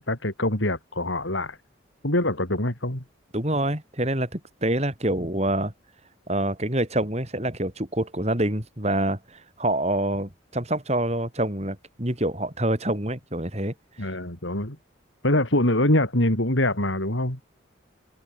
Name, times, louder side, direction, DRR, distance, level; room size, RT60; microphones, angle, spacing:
voice 1, 0.0-1.6 2.0-3.0 14.0-14.8 15.2-17.4, left 1 dB, 75° left, 4.8 m, -24 dB
voice 2, 3.3-5.7 6.3-13.7 14.0-14.1, right 1 dB, 35° right, 4.0 m, -26 dB
head